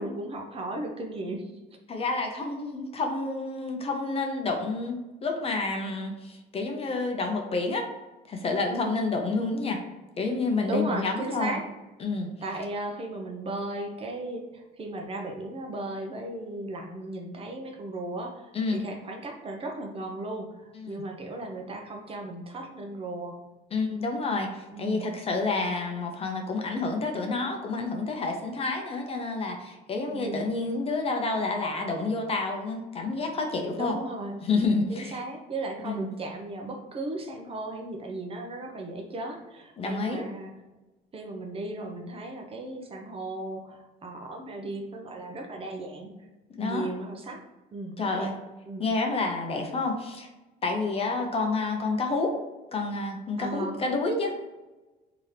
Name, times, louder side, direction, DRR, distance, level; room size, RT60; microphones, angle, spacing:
voice 1, 0.0-1.5 8.7-9.0 10.7-11.6 12.4-23.4 24.7-25.1 30.1-30.5 33.8-34.5 34.9-40.5 41.1-46.1 46.6-47.4 47.7-48.3 48.6-48.8 53.4-53.8, right 2 dB, 35° right, 2 dB, 0.7 m, -36 dB
voice 2, 1.9-7.9 8.2-9.8 10.2-11.6 12.0-12.3 18.5-18.8 20.7-21.0 23.7-34.0 34.4-35.2 35.8-36.1 39.8-40.2 46.5-46.9 48.0-48.3 48.8-50.3 50.6-52.4 52.7-54.4, left 3 dB, 35° left, 3 dB, 0.7 m, -29 dB
3.6 x 2.9 x 3.2 m, 1.1 s
cardioid pair, 110°, 17 cm